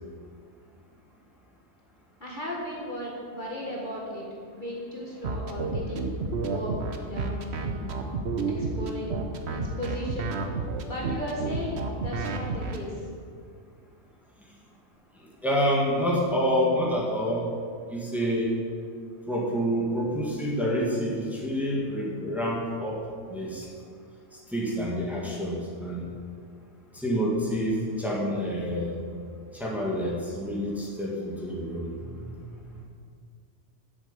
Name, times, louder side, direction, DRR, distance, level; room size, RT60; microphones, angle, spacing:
voice 1, 2.2-4.3 4.5-6.1 6.5-7.9 8.5-9.2 9.5-10.3 10.8-13.1, equal, 40° left, -3 dB, 1.8 m, -36 dB
sound 1, 5.2-12.8, right 4 dB, 60° right, 1.1 m, -30 dB
voice 2, 15.4-17.5 17.9-18.5 19.3-23.0 23.3-23.7 24.5-26.0 26.9-28.9 29.5-31.9, equal, ahead, -4 dB, 1.9 m, -27 dB
8.1 x 7.2 x 8.3 m, 2.2 s
omnidirectional pair, 1.3 m